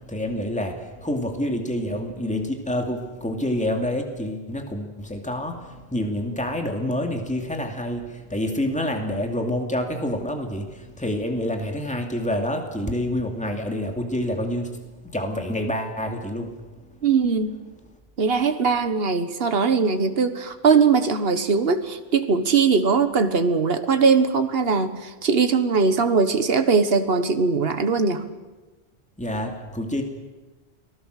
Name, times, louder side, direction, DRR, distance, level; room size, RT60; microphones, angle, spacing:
voice 1, 0.1-5.6 5.9-14.7 15.1-16.5 29.2-30.0, left 1 dB, 5° left, 3 dB, 2.4 m, -27 dB
voice 2, 17.0-17.6 18.2-28.2, right 5 dB, 70° right, 9 dB, 1.6 m, -20 dB
30.0 x 20.0 x 6.6 m, 1.2 s
omnidirectional pair, 1.1 m